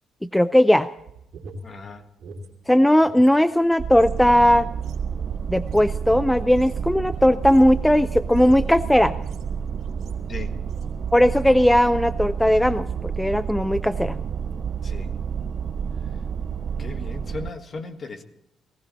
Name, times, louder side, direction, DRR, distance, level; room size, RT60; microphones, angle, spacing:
voice 1, 0.3-0.9 2.7-4.7 5.5-9.1 11.1-14.2, left 1 dB, 5° left, 14 dB, 0.5 m, -18 dB
sound 1, 1.0-3.3 3.6-10.3 10.7-11.0 11.3-11.7, right 2 dB, 75° right, 2.8 m, -45 dB
voice 2, 1.6-2.1 10.3-10.5 14.8-15.1 15.9-16.2 16.8-18.2, left 3 dB, 40° left, 7 dB, 1.7 m, -37 dB
sound 2, 3.8-17.5, right 7 dB, 55° right, 0.5 m, -30 dB
18.0 x 16.5 x 4.2 m, 0.80 s
cardioid pair, 90°, 0 cm